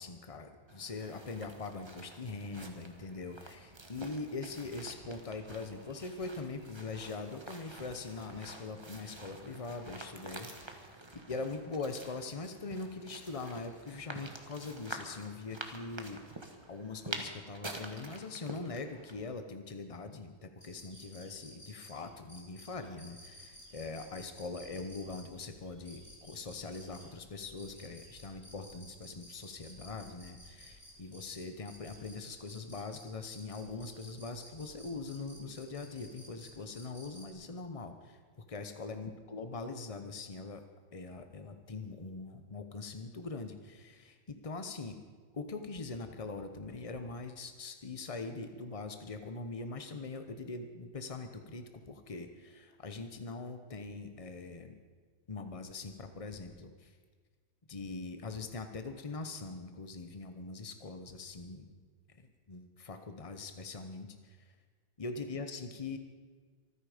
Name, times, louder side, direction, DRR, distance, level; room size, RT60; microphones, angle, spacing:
voice 1, 0.0-16.2 16.7-38.2 38.5-40.6 40.9-45.0 45.3-54.8 55.3-56.9 57.7-61.7 62.1-64.4 65.0-66.0, left 3 dB, 70° left, 8 dB, 0.3 m, -42 dB
sound 1, 0.7-19.3, right 2 dB, 15° right, 1.0 m, -48 dB
sound 2, 20.6-37.3, equal, 10° left, 3.6 m, -55 dB
25.0 x 9.9 x 5.0 m, 1.5 s
omnidirectional pair, 2.1 m